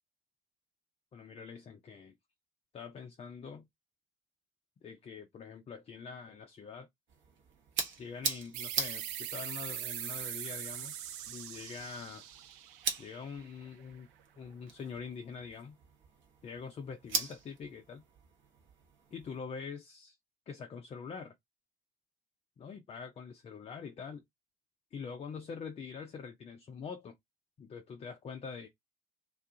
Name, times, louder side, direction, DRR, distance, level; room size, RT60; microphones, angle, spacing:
voice 1, 1.1-2.1 2.7-3.7 4.8-6.9 8.0-11.0 11.3-12.3 13.0-14.1 14.4-15.8 16.4-18.0 19.1-20.2 20.5-21.3 22.6-24.2 24.9-27.2 27.6-28.7, left 5 dB, 20° left, 0.4 m, -44 dB
sound 1, 7.1-19.4, right 5 dB, 40° right, 0.8 m, -42 dB
sound 2, 8.5-13.8, right 11 dB, 65° right, 0.5 m, -42 dB
2.3 x 2.3 x 2.6 m
figure-of-eight pair, 55°, 29 cm